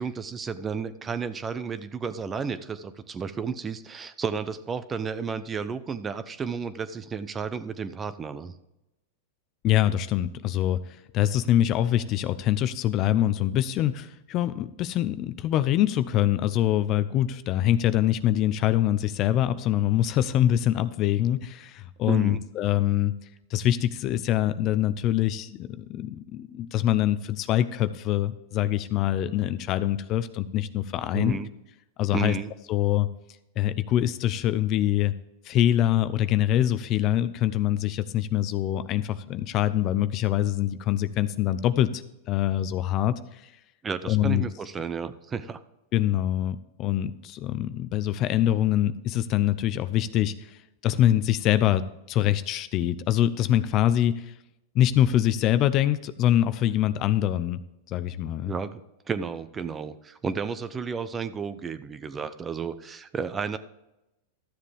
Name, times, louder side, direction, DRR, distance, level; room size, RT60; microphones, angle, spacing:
voice 1, 0.0-8.5 22.1-22.4 31.1-31.5 32.1-32.5 43.8-45.6 58.4-58.8 59.1-63.6, right 5 dB, 20° right, 13 dB, 0.7 m, -32 dB
voice 2, 9.6-10.8 11.1-23.2 23.5-31.4 32.0-32.3 32.7-33.1 33.6-35.1 35.4-43.4 44.1-44.4 45.9-50.5 50.8-54.3 54.7-57.6 57.9-58.5, left 12 dB, 40° left, 14 dB, 0.6 m, -24 dB
13.0 x 7.4 x 3.4 m, 0.90 s
hypercardioid pair, 130°, 0 cm